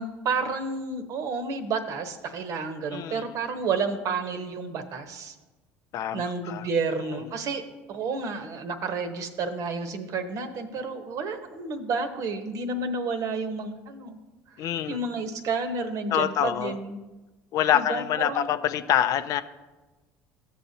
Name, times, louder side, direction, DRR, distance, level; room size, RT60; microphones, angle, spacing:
voice 1, 0.0-5.3 6.1-7.6 7.9-14.2 14.6-17.0 17.7-18.5, right 4 dB, 55° right, 8 dB, 1.0 m, -30 dB
voice 2, 2.9-3.3 5.9-6.7 14.6-15.0 16.1-16.8 17.5-19.4, left 10 dB, 55° left, 12 dB, 0.5 m, -26 dB
14.0 x 6.7 x 2.7 m, 1.2 s
supercardioid pair, 85°, 7 cm